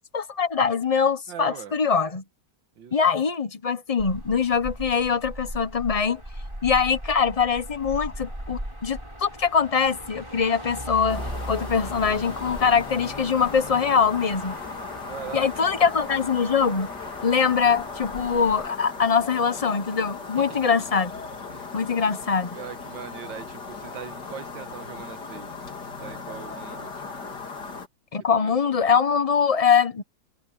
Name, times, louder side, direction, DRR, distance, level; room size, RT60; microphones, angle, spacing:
voice 1, 0.1-2.2 2.9-6.2 6.6-14.5 15.3-16.9 17.2-21.1 21.7-22.6 28.1-30.0, left 6 dB, 40° left, 0.5 m, -23 dB
voice 2, 1.3-1.7 2.8-3.0 15.1-15.5 20.4-20.7 21.5-21.8 22.5-25.5 26.0-26.9 27.2-27.4 28.4-28.8, right 8 dB, 90° right, 2.0 m, -40 dB
Motor vehicle (road), 4.0-18.7, equal, 15° right, 8.0 m, -38 dB
sound 1, 11.1-27.9, left 4 dB, 65° left, 3.2 m, -37 dB
omnidirectional pair, 2.0 m